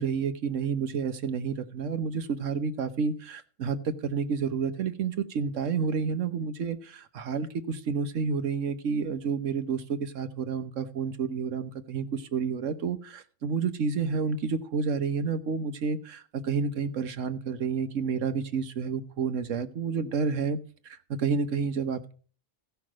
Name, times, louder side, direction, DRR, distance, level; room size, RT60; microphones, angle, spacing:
voice 1, 0.0-20.6 20.8-22.1, right 5 dB, 85° right, 11 dB, 1.4 m, -30 dB
15.5 x 5.8 x 6.2 m, 0.41 s
omnidirectional pair, 1.3 m